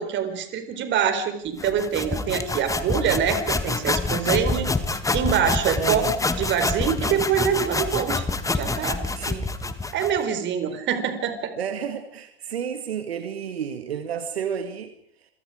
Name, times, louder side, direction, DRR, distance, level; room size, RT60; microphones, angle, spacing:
voice 1, 0.0-4.7 5.1-6.0 6.4-9.0 9.9-11.5, right 8 dB, 35° right, 9 dB, 4.2 m, -25 dB
sound 1, 1.6-10.2, left 3 dB, 10° left, 1.8 m, -26 dB
voice 2, 5.7-6.1 9.1-9.5 10.7-10.8 11.6-14.9, right 8 dB, 75° right, 8 dB, 2.1 m, -31 dB
28.0 x 24.0 x 5.0 m, 0.67 s
figure-of-eight pair, 90°, 31 cm